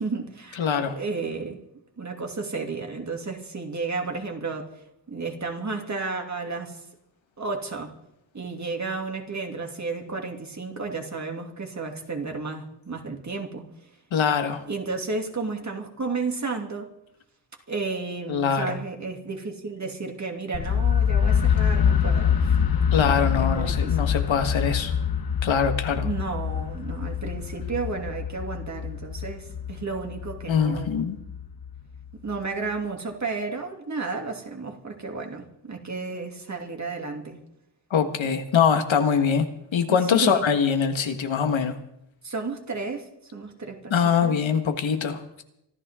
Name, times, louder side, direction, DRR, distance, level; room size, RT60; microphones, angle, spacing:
voice 1, 0.0-0.7 1.0-1.6 2.0-6.8 7.4-7.9 8.3-13.6 14.7-16.9 17.7-22.7 23.0-24.1 26.0-31.0 32.1-37.4 39.9-40.5 42.2-44.4, right 4 dB, 40° right, 2 dB, 2.8 m, -32 dB
voice 2, 0.6-1.0 14.1-14.6 18.3-18.8 22.9-24.9 25.4-26.1 30.5-31.2 37.9-39.5 39.7-41.8 43.9-45.4, left 6 dB, 80° left, 7 dB, 1.7 m, -23 dB
sound 1, 20.5-32.4, left 8 dB, 55° left, 1.1 m, -25 dB
25.0 x 14.0 x 3.7 m, 0.80 s
wide cardioid pair, 120°, 45 cm